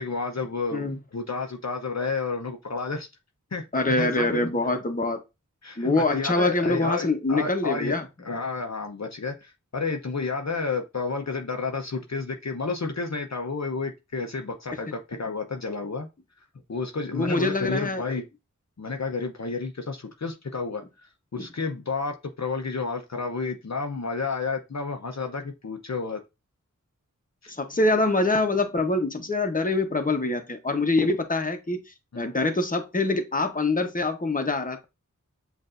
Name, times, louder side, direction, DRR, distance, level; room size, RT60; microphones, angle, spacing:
voice 1, 0.0-3.1 3.5-3.6 4.0-4.4 5.6-16.1 16.7-18.3 18.8-26.2 27.4-27.5 32.1-32.3, left 4 dB, 55° left, 0.7 m, -31 dB
voice 2, 3.7-5.2 5.8-8.0 17.1-18.0 21.4-21.5 27.5-31.8 32.1-34.8, left 2 dB, 25° left, 0.9 m, -25 dB
7.8 x 2.6 x 2.5 m
wide cardioid pair, 45°, 32 cm